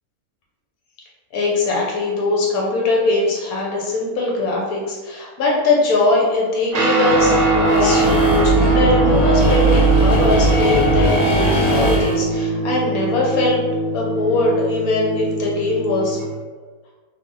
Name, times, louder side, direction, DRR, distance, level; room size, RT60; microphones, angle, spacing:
voice 1, 1.3-13.6 13.9-16.2, left 2 dB, 80° left, -2 dB, 1.2 m, -21 dB
Guitar, 6.7-16.3, right 2 dB, 55° right, 0.6 m, -21 dB
sound 1, 7.1-12.1, right 1 dB, 50° left, 1.1 m, -19 dB
3.4 x 2.1 x 3.7 m, 1.3 s
omnidirectional pair, 1.5 m